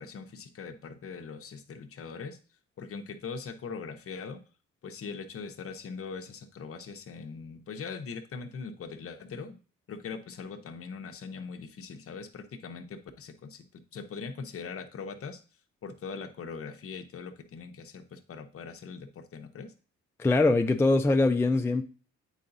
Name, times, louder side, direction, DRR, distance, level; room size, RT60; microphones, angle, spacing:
voice 1, 0.0-2.4 2.8-4.4 4.8-9.6 9.9-15.4 15.8-19.7, left 5 dB, 50° left, 0.9 m, -41 dB
voice 2, 20.2-21.8, left 2 dB, 10° left, 0.4 m, -23 dB
8.3 x 4.8 x 2.6 m
cardioid pair, 90°, 30 cm